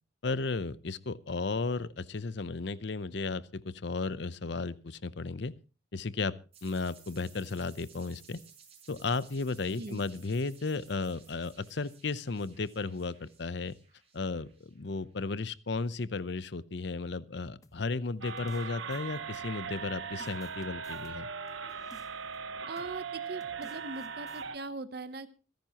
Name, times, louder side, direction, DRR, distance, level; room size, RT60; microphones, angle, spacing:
voice 1, 0.2-5.5 5.9-6.3 6.6-8.4 8.9-13.7 14.1-21.3, left 3 dB, 60° left, 17 dB, 0.7 m, -34 dB
sound 1, 6.5-15.0, right 6 dB, 30° right, 4.9 m, -58 dB
sound 2, 17.6-19.8 20.2-22.4 22.8-23.0 23.4-24.4, left 1 dB, 15° left, 1.0 m, -58 dB
sound 3, 18.2-24.6, right 6 dB, 85° right, 1.0 m, -39 dB
voice 2, 22.7-25.3, right 3 dB, 50° right, 11 dB, 0.9 m, -40 dB
26.5 x 10.5 x 2.9 m, 0.34 s
head